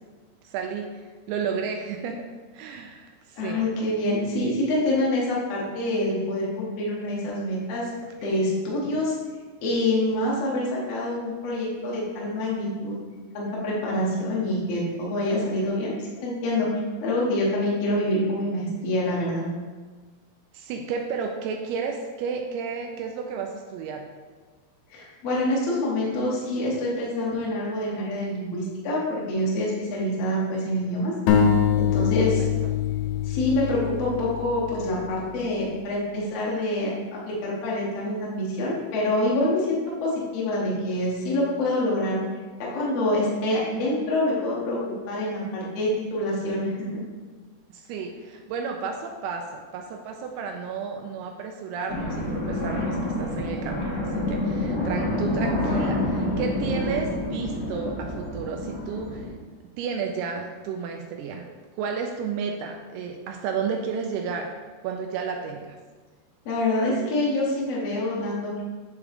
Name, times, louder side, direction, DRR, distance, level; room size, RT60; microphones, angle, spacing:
voice 1, 0.4-0.9 1.3-2.3 2.5-3.7 20.5-24.1 32.4-32.7 47.7-59.3 59.8-61.5 61.8-64.5 64.8-65.8, right 6 dB, 85° right, 3 dB, 2.4 m, -32 dB
voice 2, 3.3-7.9 8.2-9.2 9.6-13.0 13.3-15.9 16.2-16.7 17.0-19.4 24.9-31.1 31.8-32.4 33.2-42.2 42.6-46.9 66.4-68.6, left 1 dB, 70° left, -5 dB, 1.5 m, -26 dB
sound 1, 31.3-34.9, left 8 dB, 90° left, 3.0 m, -23 dB
sound 2, 51.9-59.3, left 1 dB, 40° left, 1.3 m, -28 dB
9.5 x 3.5 x 3.5 m, 1.3 s
omnidirectional pair, 4.9 m